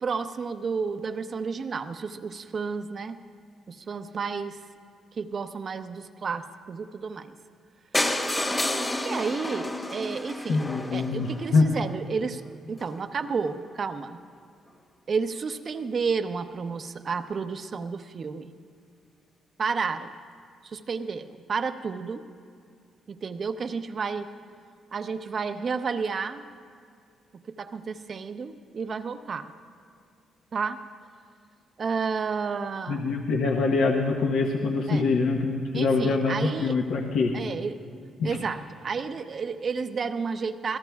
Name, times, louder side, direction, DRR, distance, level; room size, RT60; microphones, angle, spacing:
voice 1, 0.0-3.2 3.7-4.6 5.1-7.3 9.0-10.7 10.9-14.2 15.1-18.5 19.6-20.1 20.6-22.2 23.1-24.3 24.9-26.4 27.3-29.5 30.5-30.8 31.8-33.1 34.9-35.0 35.7-36.8 37.3-37.8 38.2-40.8, right 5 dB, 45° right, 9 dB, 0.7 m, -31 dB
sound 1, 7.9-11.8 12.5-12.6 12.8-12.9 13.2-13.3 13.5-13.6, left 1 dB, 15° left, 1.2 m, -30 dB
voice 2, 10.5-11.7 32.9-37.3 38.2-38.4, left 4 dB, 80° left, 0 dB, 1.0 m, -24 dB
26.0 x 18.0 x 2.3 m, 2.3 s
cardioid pair, 90°, 0 cm